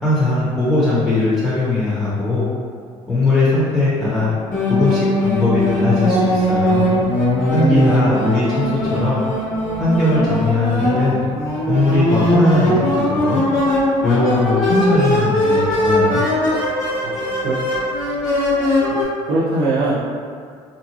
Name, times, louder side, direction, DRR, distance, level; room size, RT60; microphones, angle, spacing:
voice 1, 0.0-2.4 3.1-4.3 4.7-6.8 7.5-9.2 9.8-11.2 11.7-12.8 13.1-13.4 14.0-16.2, left 2 dB, 15° left, -11 dB, 1.2 m, -19 dB
sound 1, 4.5-19.0, left 1 dB, 65° left, 1.1 m, -19 dB
voice 2, 8.6-8.9 17.0-17.7 18.9-20.0, right 2 dB, 80° right, -8 dB, 0.6 m, -24 dB
2.7 x 2.3 x 2.9 m, 2.1 s
supercardioid pair, 80°, 14 cm